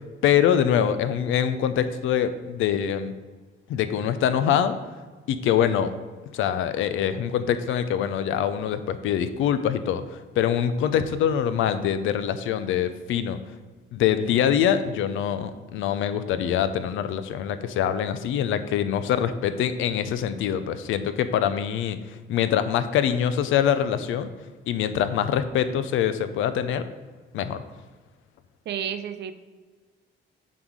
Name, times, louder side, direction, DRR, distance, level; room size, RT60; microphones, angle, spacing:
voice 1, 0.2-3.1 3.7-4.8 5.3-5.9 6.3-13.4 13.9-22.0 22.3-24.3 24.7-26.8 27.3-27.6, left 9 dB, 85° left, 11 dB, 0.5 m, -24 dB
voice 2, 28.7-29.3, right 8 dB, 60° right, 11 dB, 0.6 m, -31 dB
7.4 x 4.1 x 4.7 m, 1.4 s
cardioid pair, 90°, 20 cm